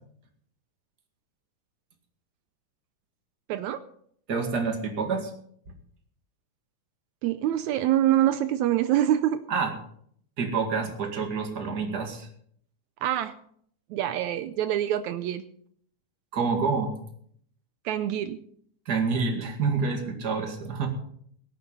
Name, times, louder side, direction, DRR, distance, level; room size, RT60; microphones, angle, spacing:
voice 1, 3.5-3.8 7.2-9.4 13.0-13.3 13.9-15.4 17.8-18.4, right 12 dB, 75° right, 12 dB, 1.8 m, -25 dB
voice 2, 4.3-5.3 9.5-9.7 10.4-12.3 16.3-16.9 18.9-20.9, right 4 dB, 35° right, 4 dB, 2.2 m, -27 dB
17.5 x 9.4 x 5.5 m, 0.65 s
omnidirectional pair, 3.7 m